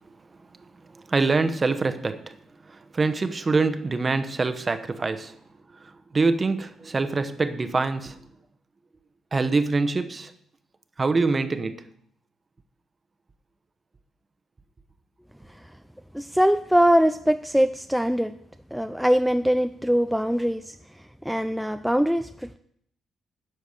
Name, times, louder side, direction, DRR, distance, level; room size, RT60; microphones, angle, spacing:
voice 1, 0.9-2.4 2.6-5.3 5.7-8.2 9.3-10.3 11.0-11.9, right 3 dB, 30° right, 0.9 m, -25 dB
voice 2, 16.1-18.3 18.7-20.7 21.2-22.6, equal, ahead, 0.4 m, -22 dB
10.5 x 6.7 x 6.5 m
cardioid pair, 90°, 0 cm